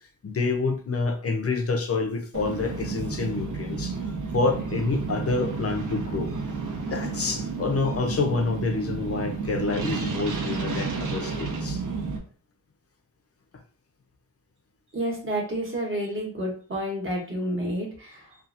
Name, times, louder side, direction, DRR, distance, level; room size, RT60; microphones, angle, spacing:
voice 1, 0.2-6.3 6.9-11.8, left 3 dB, 35° left, 4 dB, 0.5 m, -28 dB
sound 1, 2.3-12.2, right 4 dB, 50° right, 0.7 m, -31 dB
voice 2, 14.9-18.4, right 1 dB, 30° right, -2 dB, 1.0 m, -30 dB
2.7 x 2.4 x 2.4 m, 0.43 s
wide cardioid pair, 95°, 41 cm